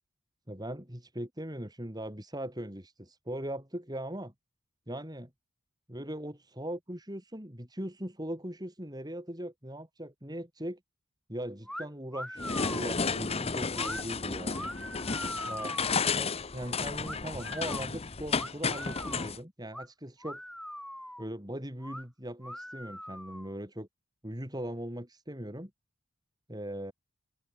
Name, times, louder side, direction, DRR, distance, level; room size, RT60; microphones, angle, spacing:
voice 1, 0.5-4.3 4.9-5.3 5.9-10.8 11.3-14.7 15.4-20.4 21.2-23.9 24.2-25.7 26.5-26.9, right 1 dB, 20° right, 4.8 m, -40 dB
sound 1, 11.7-11.9 12.1-12.9 13.7-14.0 14.5-16.1 17.0-17.9 18.4-19.3 19.7-19.9 20.2-21.3 21.8-22.0 22.4-23.5, equal, ahead, 1.4 m, -41 dB
sound 2, 12.4-19.4, left 4 dB, 25° left, 0.9 m, -32 dB
head